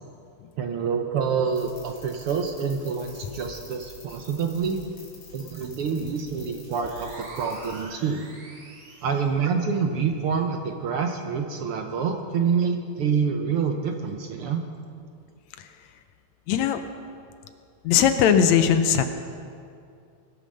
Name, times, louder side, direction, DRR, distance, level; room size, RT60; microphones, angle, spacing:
voice 1, 0.6-4.8 5.3-8.2 9.0-14.6, right 6 dB, 65° right, 4 dB, 1.4 m, -27 dB
sound 1, 1.5-7.8, left 3 dB, 40° left, 4.0 m, -47 dB
sound 2, 6.7-9.4, right 2 dB, 50° right, 2.8 m, -44 dB
voice 2, 16.5-16.8 17.8-19.0, left 8 dB, 75° left, 9 dB, 2.0 m, -19 dB
21.0 x 8.8 x 6.4 m, 2.4 s
omnidirectional pair, 3.4 m